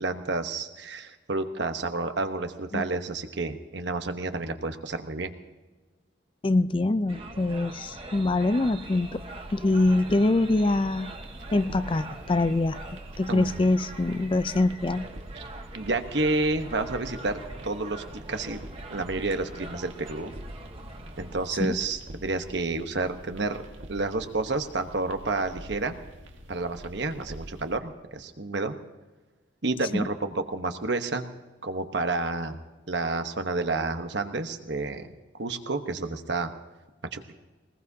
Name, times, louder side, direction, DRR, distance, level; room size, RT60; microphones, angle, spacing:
voice 1, 0.0-5.3 13.3-13.6 15.3-15.4 15.7-18.6 18.9-20.3 21.2-23.6 23.9-25.9 26.5-28.7 29.6-31.2 31.6-32.6 32.9-35.1 35.3-36.5 37.1-37.3, right 3 dB, 65° right, 7 dB, 1.1 m, -30 dB
voice 2, 6.4-9.2 9.5-11.1 11.5-12.8 13.2-15.1 21.6-21.8 29.9-30.1, left 2 dB, 25° left, 13 dB, 0.4 m, -24 dB
sound 1, 7.1-21.5, right 2 dB, 30° right, 1.2 m, -43 dB
sound 2, 8.5-27.8, equal, 85° right, 1.7 m, -46 dB
21.5 x 20.0 x 2.8 m, 1.2 s
head